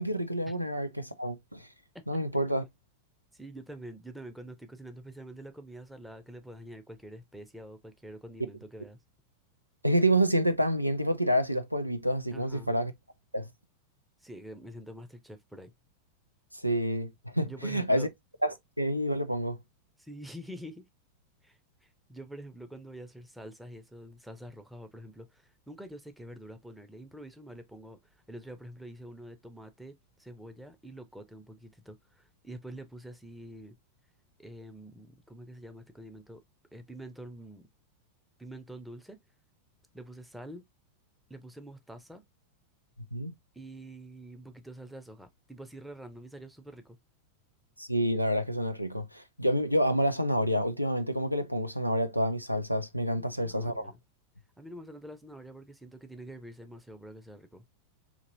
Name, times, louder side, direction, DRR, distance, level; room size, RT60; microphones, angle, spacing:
voice 1, 0.0-1.7 2.1-2.6 9.8-12.9 13.3-13.5 16.5-18.1 18.4-19.6 43.1-43.3 47.8-53.9, equal, 90° right, 0.4 m, -28 dB
voice 2, 3.3-9.0 12.3-12.7 14.2-15.7 17.4-18.1 20.0-20.9 21.4-33.8 34.4-36.4 36.7-37.7 38.4-39.2 39.9-40.6 41.3-42.2 43.5-47.0 53.1-54.0 54.6-57.6, right 1 dB, 5° right, 0.7 m, -46 dB
4.0 x 2.9 x 2.9 m
figure-of-eight pair, 90°, 0 cm